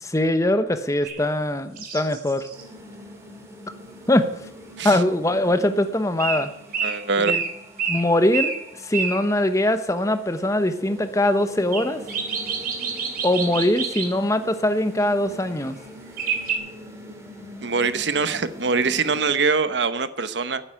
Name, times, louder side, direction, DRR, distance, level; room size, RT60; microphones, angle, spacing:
voice 1, 0.0-2.5 4.1-4.3 4.8-6.5 7.2-7.4 7.9-12.0 13.2-15.8, left 1 dB, 15° left, 10 dB, 1.0 m, -22 dB
sound 1, 1.0-1.2 1.8-2.6 6.2-6.5 6.7-9.2 11.7-14.1 16.2-16.5, right 6 dB, 55° right, 3.0 m, -28 dB
sound 2, 2.5-19.3, equal, 15° right, 2.6 m, -43 dB
voice 2, 6.8-7.3 17.6-20.6, right 4 dB, 80° right, 13 dB, 1.0 m, -23 dB
13.0 x 8.9 x 8.9 m, 0.77 s
head